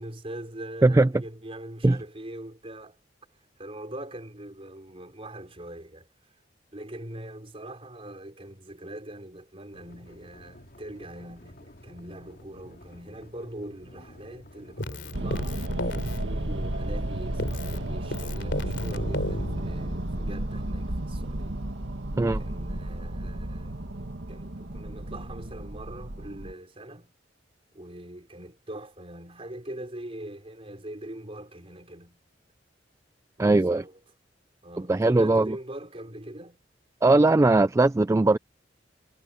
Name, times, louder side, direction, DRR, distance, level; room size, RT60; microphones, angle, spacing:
voice 1, 0.0-3.0 3.6-6.1 6.7-15.6 16.1-21.6 22.3-23.9 24.3-27.1 27.7-32.2 33.4-34.0 34.6-36.6, right 1 dB, 35° right, 4.3 m, -42 dB
sound 1, 9.7-17.8, equal, 55° left, 2.9 m, -51 dB
Keyboard (musical), 14.8-17.1 17.4-20.2, left 1 dB, 75° left, 3.4 m, -35 dB
sound 2, 15.1-26.5, right 1 dB, 85° right, 1.8 m, -33 dB
voice 2, 33.4-33.8 34.9-35.5 37.0-38.4, right 2 dB, 15° right, 0.3 m, -19 dB
head